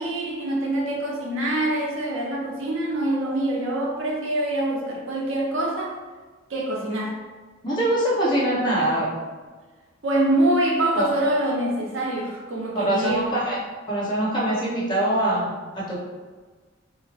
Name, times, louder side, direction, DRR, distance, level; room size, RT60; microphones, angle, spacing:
voice 1, 0.0-6.0 6.5-7.1 10.0-13.3, right 1 dB, 75° right, -1 dB, 0.7 m, -25 dB
voice 2, 7.6-9.1 10.9-11.1 12.7-13.6 13.9-16.0, right 1 dB, 20° left, -9 dB, 1.0 m, -23 dB
2.8 x 2.1 x 4.0 m, 1.4 s
head